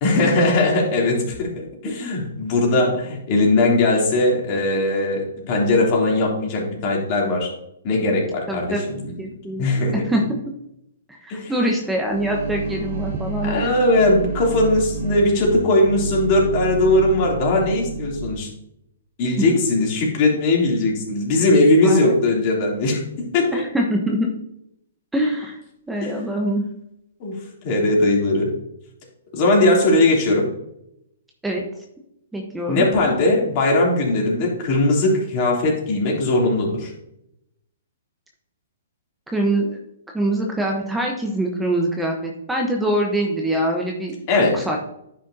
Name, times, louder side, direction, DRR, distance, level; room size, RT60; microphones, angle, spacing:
voice 1, 0.0-7.5 7.8-8.8 9.6-10.0 11.3-11.5 13.4-18.5 19.2-23.6 26.0-26.1 27.2-27.4 27.6-28.5 29.3-30.4 32.7-36.9 44.3-44.6, left 2 dB, 40° left, -2 dB, 3.2 m, -19 dB
voice 2, 8.5-10.4 11.1-13.7 21.8-22.1 23.5-24.3 25.1-25.6 25.9-26.6 31.4-31.6 32.3-32.8 39.3-39.8 40.1-44.8, right 1 dB, 5° right, 0 dB, 1.1 m, -24 dB
sound 1, 12.0-18.4, right 3 dB, 70° right, 2.7 m, -30 dB
10.0 x 6.2 x 2.8 m, 0.78 s
hypercardioid pair, 130°, 0 cm